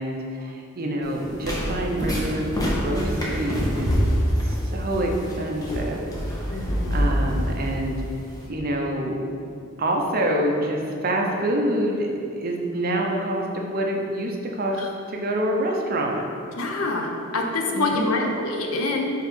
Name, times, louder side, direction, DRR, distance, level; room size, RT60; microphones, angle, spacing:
voice 1, 0.0-3.9 4.7-6.1 6.9-8.0 8.5-9.2 9.8-14.8 15.1-16.2 17.7-18.3, right 1 dB, 45° right, 1 dB, 0.6 m, -26 dB
sound 1, 1.0-8.5, equal, 15° left, 0.9 m, -26 dB
voice 2, 4.0-4.4 6.5-7.2 14.7-14.9 16.5-19.1, left 2 dB, 80° left, 2 dB, 0.7 m, -27 dB
4.7 x 4.5 x 5.4 m, 2.5 s
head